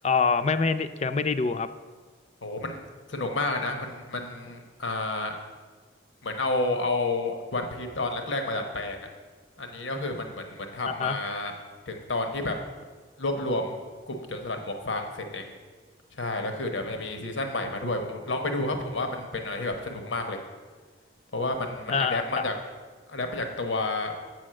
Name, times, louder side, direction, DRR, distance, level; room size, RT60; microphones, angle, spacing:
voice 1, 0.0-1.7 10.9-11.2 21.9-22.4, left 5 dB, 35° left, 12 dB, 0.4 m, -25 dB
voice 2, 2.4-2.8 3.1-5.4 6.2-9.1 9.6-11.5 11.9-12.6 13.2-13.8 14.1-15.5 16.2-20.4 21.3-22.5 23.1-24.1, left 2 dB, 85° left, 5 dB, 1.0 m, -30 dB
8.3 x 6.3 x 7.6 m, 1.5 s
head